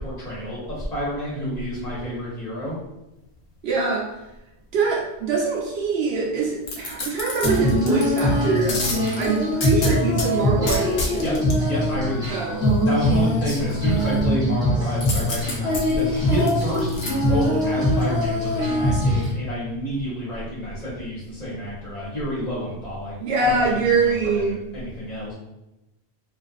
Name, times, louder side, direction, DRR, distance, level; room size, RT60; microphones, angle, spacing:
voice 1, 0.0-2.8 11.2-11.3 11.6-12.5 12.8-23.2 23.4-25.3, equal, 40° left, -8 dB, 1.1 m, -29 dB
voice 2, 3.6-4.1 4.7-8.8 9.2-11.3 12.3-12.6 23.2-24.6, right 4 dB, 70° right, -2 dB, 0.8 m, -23 dB
sound 1, 6.6-8.2 8.7-10.3 10.7-11.6 15.0-17.1 17.6-17.7, left 2 dB, 70° left, 0.8 m, -29 dB
Female singing, 7.4-19.3, left 1 dB, 5° right, 0.8 m, -22 dB
2.4 x 2.4 x 2.3 m, 0.94 s
omnidirectional pair, 1.1 m